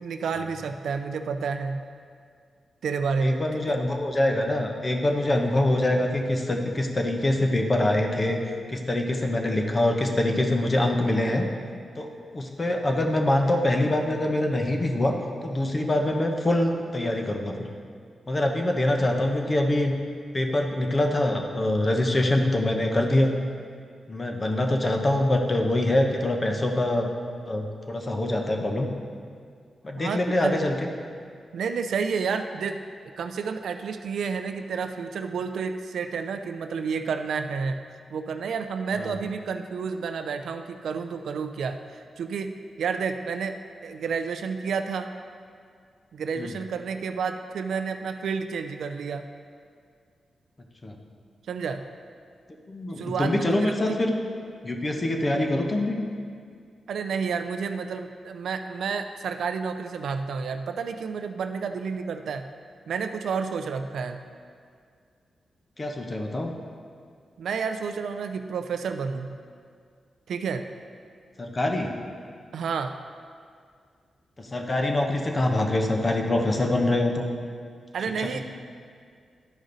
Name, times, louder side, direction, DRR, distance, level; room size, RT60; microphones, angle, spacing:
voice 1, 0.0-1.8 2.8-3.8 30.0-30.5 31.5-32.8 33.2-37.8 38.1-43.6 43.8-45.1 46.1-49.3 51.5-51.8 53.0-54.0 56.9-62.5 62.9-64.2 67.4-69.4 70.3-70.6 72.5-73.0 77.9-78.4, right 5 dB, 85° right, 7 dB, 0.4 m, -30 dB
voice 2, 3.2-8.4 8.7-11.5 12.0-15.2 15.4-17.7 18.3-19.9 20.3-23.3 24.1-27.1 27.5-28.9 29.8-30.9 38.9-39.1 46.4-46.5 50.8-51.0 52.7-54.1 54.6-56.0 65.8-66.5 71.4-71.9 74.4-77.3 78.2-78.4, left 1 dB, 30° left, 3 dB, 0.9 m, -24 dB
12.0 x 5.1 x 4.0 m, 2.1 s
cardioid pair, 90°, 0 cm